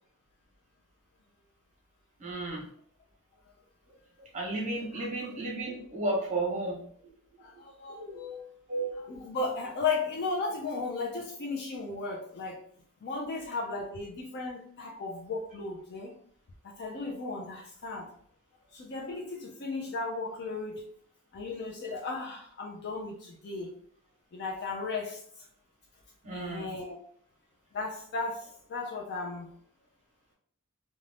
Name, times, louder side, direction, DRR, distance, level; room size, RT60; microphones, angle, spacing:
voice 1, 2.2-2.6 4.3-6.8 7.9-8.2 8.7-8.9 26.2-26.7, right 2 dB, 35° right, -2 dB, 0.9 m, -33 dB
voice 2, 7.4-8.4 9.1-12.6 13.0-16.1 16.8-18.1 18.7-20.9 21.3-23.7 24.3-25.2 26.3-27.0 27.7-29.5, left 3 dB, 50° left, -1 dB, 0.4 m, -35 dB
2.5 x 2.2 x 3.2 m, 0.62 s
head